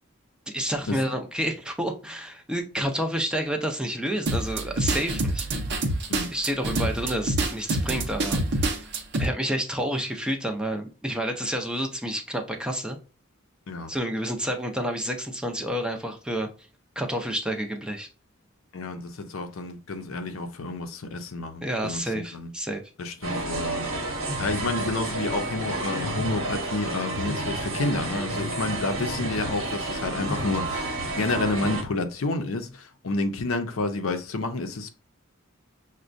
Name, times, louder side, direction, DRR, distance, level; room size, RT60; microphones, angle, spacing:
voice 1, 0.5-5.5 6.3-8.9 9.1-13.0 13.9-16.5 17.0-18.1 21.6-22.8, equal, 5° right, 0.5 m, -29 dB
sound 1, 4.3-9.3, right 2 dB, 55° right, 0.7 m, -26 dB
voice 2, 18.7-22.5 23.0-23.9 24.4-34.9, left 3 dB, 75° left, 0.6 m, -30 dB
sound 2, 23.2-31.8, right 2 dB, 70° right, 1.0 m, -30 dB
6.1 x 2.2 x 2.5 m
head